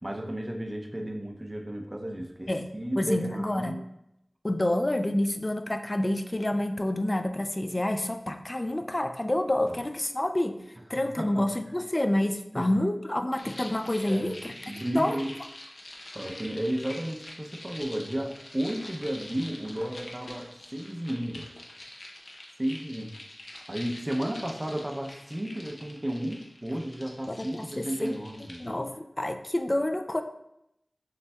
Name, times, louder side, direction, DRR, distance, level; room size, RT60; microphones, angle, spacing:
voice 1, 0.0-3.9 9.6-9.8 11.2-11.5 12.5-12.7 14.0-14.3 14.6-15.4 16.1-21.5 22.6-23.1 23.7-28.6, right 1 dB, 25° right, 2 dB, 0.6 m, -33 dB
voice 2, 3.0-3.8 4.4-10.6 10.9-14.4 14.9-15.2 27.3-28.2 28.6-30.2, left 1 dB, 35° left, 8 dB, 0.3 m, -28 dB
sound 1, 13.3-28.7, left 1 dB, 90° left, 0.7 m, -46 dB
6.7 x 3.3 x 2.3 m, 0.82 s
wide cardioid pair, 50°, 0 cm